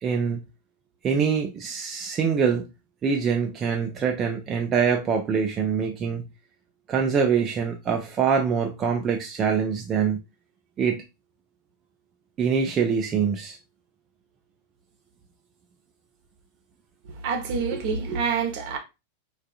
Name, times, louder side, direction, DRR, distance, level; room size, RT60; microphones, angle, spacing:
voice 1, 0.0-0.4 1.0-2.7 3.0-6.2 6.9-10.2 10.8-11.0 12.4-13.6, right 6 dB, 25° right, 0.4 m, -24 dB
voice 2, 17.1-18.8, right 5 dB, 45° right, 0.8 m, -27 dB
3.5 x 2.4 x 2.3 m
figure-of-eight pair, 90°, 0 cm